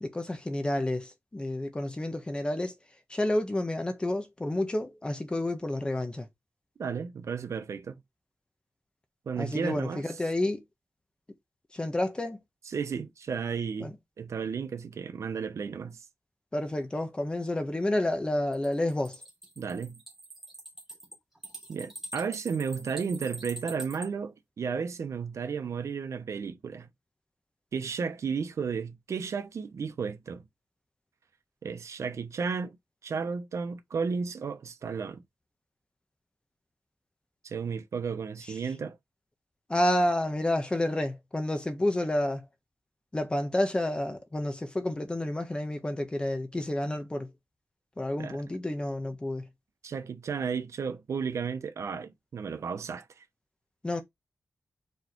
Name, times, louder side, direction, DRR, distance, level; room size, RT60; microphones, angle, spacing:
voice 1, 0.0-2.7 3.1-6.3 9.4-10.6 11.7-12.4 13.8-13.9 16.5-19.2 39.7-42.4 43.1-47.3 48.0-49.5 53.8-54.0, left 1 dB, 20° left, 1.2 m, -30 dB
voice 2, 6.8-8.0 9.3-10.1 12.7-16.0 19.6-20.0 21.7-26.9 27.7-30.4 31.6-32.8 33.0-35.2 37.4-39.0 48.2-48.4 49.8-53.2, right 6 dB, 75° right, 1.0 m, -33 dB
sound 1, 18.5-24.1, right 1 dB, 5° right, 3.2 m, -44 dB
4.8 x 4.6 x 4.6 m
wide cardioid pair, 135°, 5 cm